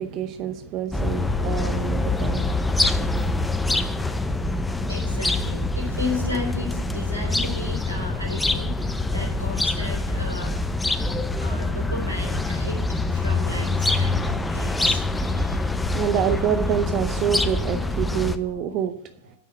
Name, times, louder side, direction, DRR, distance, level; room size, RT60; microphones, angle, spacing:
voice 1, 0.0-3.2 15.6-18.9, right 9 dB, 35° right, 0.7 m, -27 dB
sound 1, 0.9-18.4, left 2 dB, 5° left, 0.6 m, -25 dB
voice 2, 4.7-10.6 11.4-12.8 13.1-15.7 18.1-18.3, left 2 dB, 90° right, 3.3 m, -34 dB
9.4 x 5.7 x 8.4 m
figure-of-eight pair, 95°, 0 cm